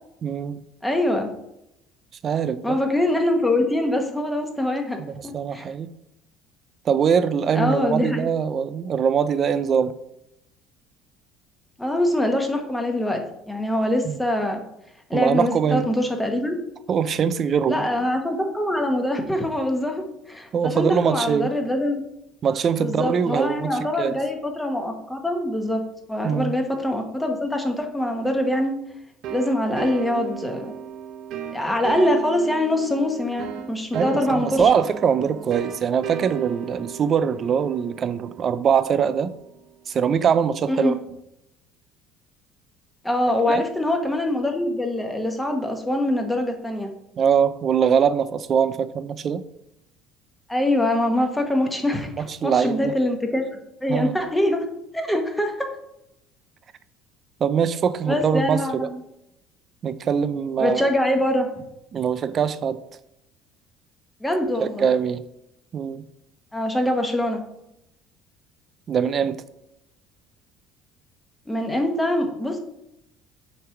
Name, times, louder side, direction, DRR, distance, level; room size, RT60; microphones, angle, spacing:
voice 1, 0.2-0.6 2.2-2.8 5.0-5.9 6.9-9.9 14.0-14.2 15.1-15.9 16.9-17.9 20.5-21.5 22.4-24.2 26.2-26.5 33.9-39.3 39.9-40.9 43.5-43.6 47.2-49.4 52.2-52.9 53.9-54.1 57.4-58.9 59.8-60.9 61.9-62.8 64.6-65.2 65.7-66.0 68.9-69.4, right 7 dB, 35° right, 13 dB, 0.4 m, -22 dB
voice 2, 0.8-1.3 2.6-5.7 7.5-8.3 11.8-13.2 13.5-14.6 15.1-16.6 17.7-22.0 22.8-25.8 26.1-28.8 29.3-30.7 31.5-34.7 40.7-41.0 43.0-46.9 50.5-53.5 53.8-54.7 54.9-55.7 58.1-59.0 60.6-61.6 64.2-64.9 66.5-67.4 71.5-72.6, left 1 dB, 5° left, 4 dB, 1.1 m, -24 dB
sound 1, 29.2-39.7, right 8 dB, 60° right, 0.9 m, -36 dB
7.8 x 3.3 x 5.8 m, 0.83 s
cardioid pair, 135°, 0 cm